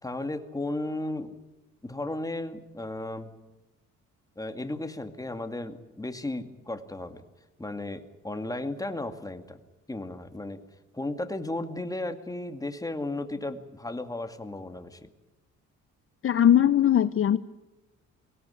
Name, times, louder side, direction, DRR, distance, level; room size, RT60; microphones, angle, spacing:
voice 1, 0.0-1.3 1.8-3.3 4.4-7.2 7.6-9.6 9.9-10.6 10.9-15.1, left 2 dB, 10° left, 8 dB, 2.2 m, -34 dB
voice 2, 16.2-17.4, left 10 dB, 45° left, 14 dB, 0.7 m, -20 dB
22.5 x 17.5 x 9.9 m, 1.0 s
cardioid pair, 90°, 30 cm